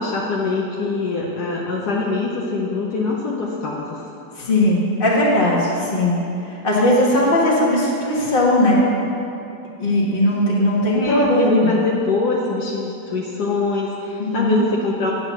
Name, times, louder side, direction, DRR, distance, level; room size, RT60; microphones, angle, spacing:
voice 1, 0.0-4.0 10.9-15.1, left 3 dB, 70° left, -2 dB, 1.3 m, -23 dB
voice 2, 4.3-6.2 6.4-8.8 9.8-11.7 14.2-14.6, left 1 dB, 30° left, -4 dB, 1.6 m, -18 dB
8.8 x 4.5 x 7.0 m, 2.9 s
omnidirectional pair, 1.9 m